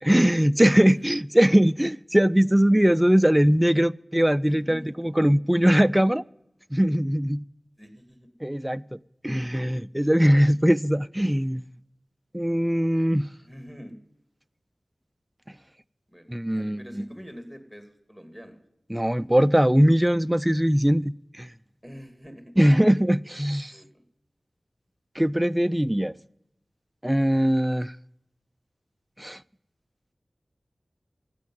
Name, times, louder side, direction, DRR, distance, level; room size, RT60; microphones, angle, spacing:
voice 1, 0.0-6.2 6.7-7.4 8.4-8.8 9.2-11.6 12.3-13.3 16.3-17.0 18.9-21.5 22.6-23.7 25.2-26.1 27.0-27.9 29.2-29.4, equal, 10° right, 0.4 m, -21 dB
voice 2, 0.7-1.1 4.4-5.0 5.3-5.4 7.8-8.3 13.4-14.0 16.1-18.6 21.8-22.6 23.7-24.0, equal, 10° left, 2.6 m, -45 dB
12.5 x 8.6 x 9.3 m
wide cardioid pair, 45°, 0 cm